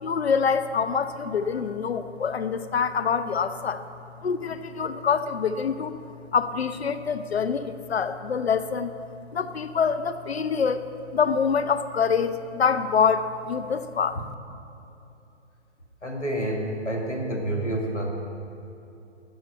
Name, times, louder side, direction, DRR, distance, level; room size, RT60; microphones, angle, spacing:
voice 1, 0.0-3.9 4.2-6.0 6.3-8.9 9.3-14.2, left 6 dB, 60° left, 12 dB, 0.7 m, -25 dB
voice 2, 16.0-18.1, right 1 dB, 80° left, 1 dB, 2.2 m, -28 dB
11.5 x 7.2 x 8.0 m, 2.7 s
figure-of-eight pair, 135°, 35 cm